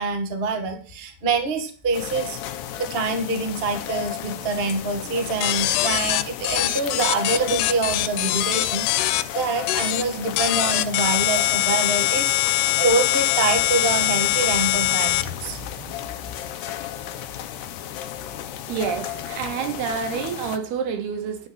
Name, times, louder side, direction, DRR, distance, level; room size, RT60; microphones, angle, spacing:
voice 1, 0.0-2.4 2.8-15.8, right 3 dB, 40° right, 0.7 m, -26 dB
sound 1, 1.9-20.6, left 11 dB, 75° left, 2.0 m, -34 dB
sound 2, 5.4-9.2 9.7-10.0 10.4-15.2, left 16 dB, 90° left, 2.8 m, -22 dB
voice 2, 18.7-21.5, right 7 dB, 75° right, 3.4 m, -28 dB
11.0 x 6.8 x 7.2 m
omnidirectional pair, 4.7 m